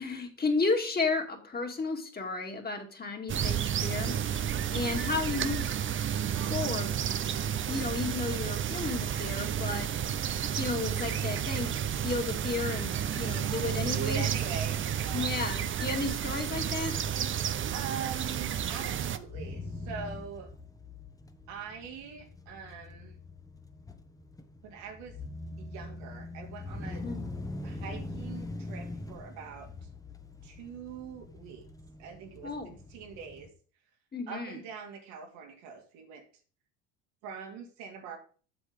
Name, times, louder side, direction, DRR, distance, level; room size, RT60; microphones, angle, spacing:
voice 1, 0.0-4.2 4.7-5.7 6.5-7.0 7.7-9.9 10.3-11.7 12.0-14.2 15.1-16.9 27.0-27.2 32.4-32.7 34.1-34.6, left 3 dB, 25° left, 3 dB, 2.3 m, -33 dB
sound 1, 3.3-19.2, right 9 dB, 30° right, 0.7 m, -31 dB
voice 2, 13.9-15.4 17.7-20.5 21.5-23.2 24.6-25.2 25.6-27.0 27.6-29.7 30.4-31.6 32.0-33.5 34.3-36.2 37.2-38.2, right 6 dB, 75° right, 2 dB, 2.6 m, -42 dB
sound 2, 18.5-33.5, left 2 dB, 10° left, 1.2 m, -43 dB
8.1 x 6.5 x 5.2 m, 0.40 s
hypercardioid pair, 75°, 38 cm